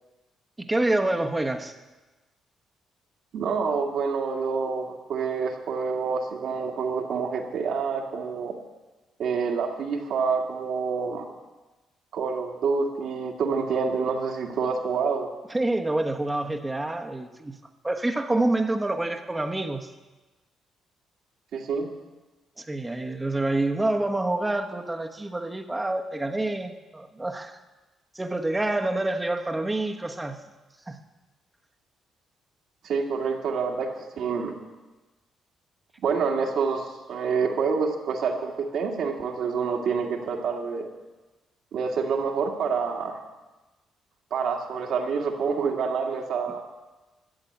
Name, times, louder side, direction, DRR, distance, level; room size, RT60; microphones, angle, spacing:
voice 1, 0.6-1.7 15.5-17.5 17.8-19.9 22.6-27.6 28.1-30.4 30.9-31.0 46.5-46.6, right 2 dB, 15° right, 4 dB, 1.2 m, -27 dB
voice 2, 3.3-8.5 9.2-11.2 12.1-15.3 21.5-21.9 32.8-34.6 36.0-40.9 41.7-43.2 44.3-46.6, right 5 dB, 70° right, 1 dB, 2.1 m, -27 dB
13.0 x 7.9 x 8.1 m, 1.2 s
cardioid pair, 90°, 0 cm